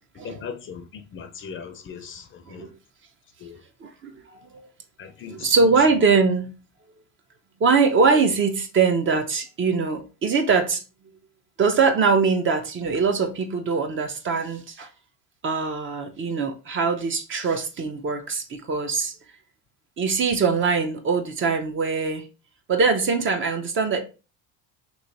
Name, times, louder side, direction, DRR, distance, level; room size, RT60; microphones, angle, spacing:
voice 1, 0.2-2.7 3.4-3.6 5.0-5.5, left 6 dB, 35° left, 0.6 m, -38 dB
voice 2, 3.8-4.7 5.3-6.5 7.6-10.8 11.6-14.9 15.4-19.1 20.0-22.3 22.7-24.0, right 4 dB, 35° right, 0.7 m, -22 dB
3.1 x 2.9 x 4.0 m
supercardioid pair, 105°, 34 cm